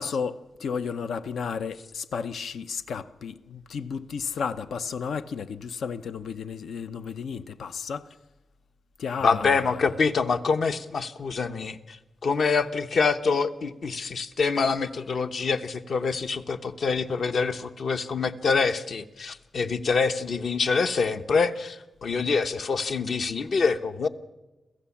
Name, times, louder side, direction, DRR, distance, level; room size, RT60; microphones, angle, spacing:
voice 1, 0.0-8.1 9.0-9.8, left 6 dB, 85° left, 0.8 m, -33 dB
voice 2, 9.2-24.1, left 4 dB, 55° left, 0.9 m, -26 dB
27.0 x 15.0 x 7.2 m
wide cardioid pair, 180°, 0 cm